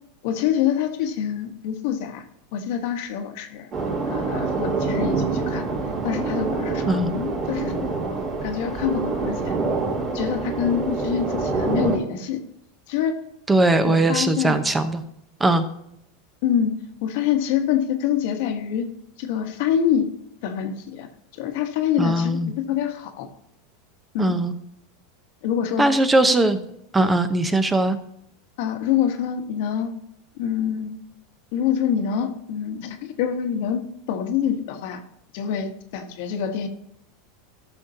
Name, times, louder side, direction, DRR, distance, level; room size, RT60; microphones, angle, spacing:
voice 1, 0.2-2.2 2.5-3.7 4.1-5.7 6.0-9.6 10.1-12.4 12.9-13.2 13.8-14.6 16.4-16.7 17.0-18.9 19.2-20.1 20.4-21.1 21.3-23.3 24.1-24.3 25.4-25.9 28.6-29.9 30.4-30.9 31.5-33.8 34.1-35.0 35.3-36.7, left 9 dB, 65° left, 6 dB, 1.2 m, -26 dB
sound 1, 3.7-12.0, right 3 dB, 40° right, 3.1 m, -26 dB
voice 2, 13.5-15.0 15.4-15.6 22.0-22.5 24.2-24.5 25.8-26.6 26.9-28.0, right 2 dB, 15° right, 10 dB, 0.8 m, -20 dB
13.0 x 6.4 x 2.8 m, 0.77 s
hypercardioid pair, 105°, 0 cm